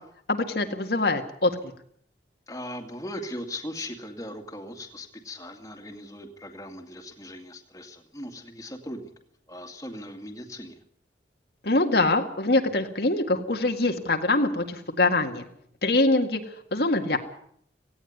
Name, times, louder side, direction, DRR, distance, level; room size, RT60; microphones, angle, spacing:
voice 1, 0.3-1.5 11.6-15.5 15.8-16.4 16.7-17.2, left 2 dB, 65° left, 5 dB, 2.0 m, -24 dB
voice 2, 2.5-9.1 9.5-10.8, left 1 dB, 20° left, 3 dB, 2.3 m, -39 dB
18.0 x 17.0 x 9.6 m, 0.66 s
head